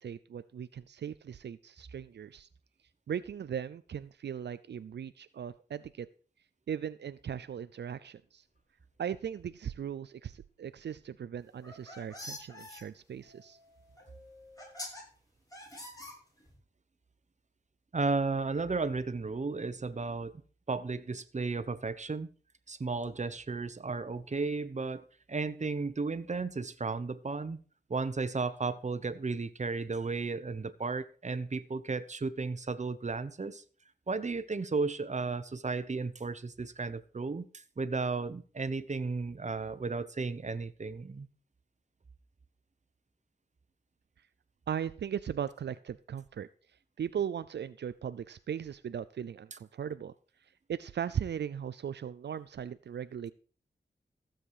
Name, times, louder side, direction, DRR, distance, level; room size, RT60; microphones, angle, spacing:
voice 1, 0.0-2.5 3.1-6.1 6.7-8.4 9.0-13.6 44.7-46.5 47.0-50.1 50.4-53.3, right 8 dB, 80° right, 13 dB, 0.5 m, -38 dB
Subway metro underground, 8.0-8.1 8.6-8.7 8.9-9.0 9.6-9.7 12.1-12.8 13.1-14.8, left 2 dB, 85° left, 3.9 m, -59 dB
sound 1, 11.5-12.8 14.0-14.1 14.6-15.0 15.5-16.6, left 1 dB, 20° left, 7.2 m, -44 dB
voice 2, 17.9-20.3 20.7-22.3 22.7-27.6 27.9-33.6 34.1-41.3, right 4 dB, 40° right, 12 dB, 1.1 m, -34 dB
15.0 x 7.5 x 4.9 m, 0.42 s
cardioid pair, 65°, 18 cm